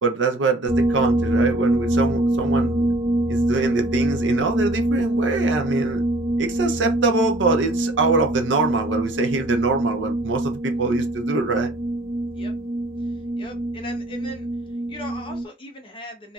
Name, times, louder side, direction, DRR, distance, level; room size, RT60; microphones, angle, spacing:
voice 1, 0.0-2.9 3.3-6.0 6.4-11.7, right 3 dB, 75° right, 0.6 m, -24 dB
sound 1, 0.7-15.4, right 1 dB, 30° right, 1.0 m, -24 dB
voice 2, 12.4-12.7 13.4-14.5 14.9-16.3, left 1 dB, 30° left, 0.8 m, -38 dB
2.9 x 2.6 x 2.3 m
head